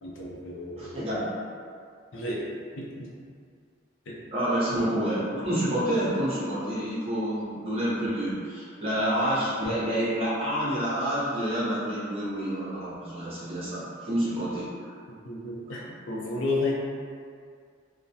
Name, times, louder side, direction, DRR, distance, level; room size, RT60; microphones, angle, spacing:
voice 1, 0.0-1.1 2.1-2.4 2.8-3.1 4.1-4.2 15.1-16.7, left 2 dB, 80° left, -4 dB, 0.5 m, -32 dB
voice 2, 0.8-1.2 4.3-14.9, right 1 dB, 30° right, -9 dB, 0.7 m, -28 dB
2.2 x 2.2 x 2.6 m, 2.1 s
head